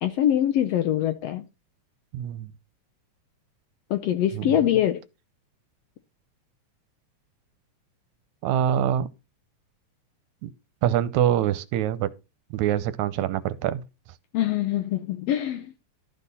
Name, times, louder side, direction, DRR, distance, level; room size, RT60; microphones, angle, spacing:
voice 1, 0.0-1.5 3.9-5.0 14.3-15.7, left 11 dB, 75° left, 1.5 m, -24 dB
voice 2, 2.1-2.5 4.4-4.6 8.4-9.1 10.4-10.5 10.8-12.1 12.5-13.8, right 10 dB, 80° right, 1.9 m, -24 dB
12.0 x 4.2 x 5.4 m
omnidirectional pair, 3.4 m